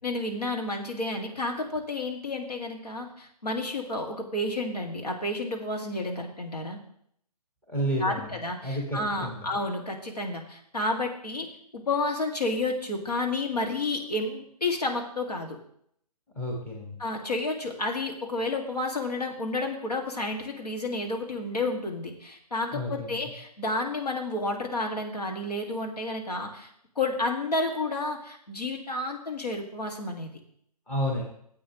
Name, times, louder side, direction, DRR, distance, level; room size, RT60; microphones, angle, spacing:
voice 1, 0.0-6.8 8.0-11.5 11.9-15.6 17.0-26.7 27.0-30.3, left 2 dB, 70° left, 1 dB, 2.2 m, -31 dB
voice 2, 7.7-9.5 16.3-17.0 22.7-23.3 30.9-31.2, equal, 5° left, -2 dB, 1.4 m, -31 dB
13.0 x 8.4 x 3.1 m, 0.67 s
figure-of-eight pair, 140°, 21 cm